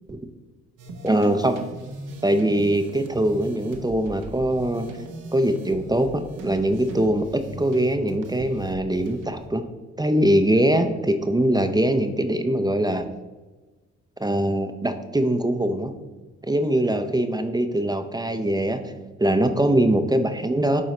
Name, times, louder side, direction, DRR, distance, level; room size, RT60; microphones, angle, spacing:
sound 1, 0.8-9.5, right 2 dB, 75° right, 1.0 m, -39 dB
voice 1, 1.0-1.6 2.2-4.9 5.3-9.7 10.0-13.0 14.2-15.9 16.4-18.9 19.2-20.8, right 1 dB, 10° right, 7 dB, 0.6 m, -22 dB
8.9 x 3.9 x 3.2 m, 1.2 s
supercardioid pair, 55°, 32 cm